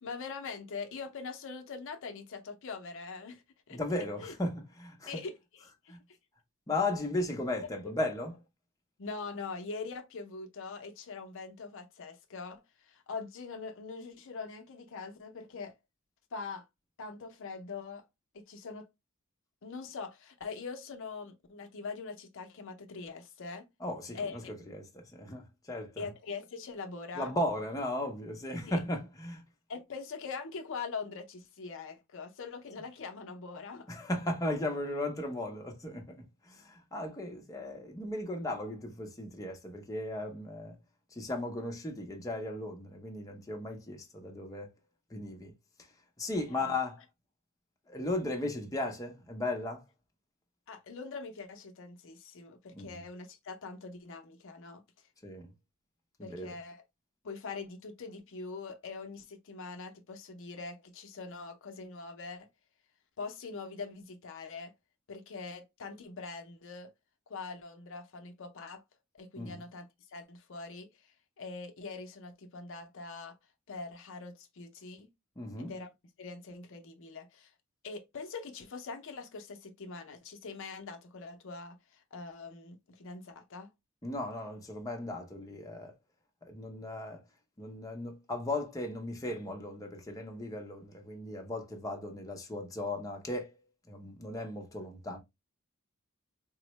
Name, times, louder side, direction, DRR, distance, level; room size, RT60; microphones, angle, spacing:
voice 1, 0.0-3.8 4.2-4.3 5.1-6.0 9.0-15.7 16.3-16.7 17.0-18.0 18.3-18.9 19.6-23.7 24.1-24.6 26.0-27.3 28.7-28.8 29.7-33.9 46.5-46.7 50.7-54.8 56.2-56.8 57.2-62.5 63.2-64.7 65.1-66.9 67.3-68.8 69.1-73.4 73.7-75.1 75.6-75.9 76.2-77.5 77.8-83.7, left 4 dB, 65° left, 0.5 m, -43 dB
voice 2, 3.7-5.1 5.9-6.0 6.7-8.3 23.8-24.2 24.7-26.0 27.2-29.4 33.9-36.2 36.4-40.8 41.1-44.7 45.1-45.5 46.2-47.0 47.9-49.8 52.8-53.0 55.2-55.5 56.2-56.5 69.4-69.6 75.4-75.7 84.0-85.9 86.4-87.2 87.6-93.5 93.9-95.2, left 1 dB, 15° left, 0.6 m, -36 dB
3.7 x 2.0 x 3.0 m
head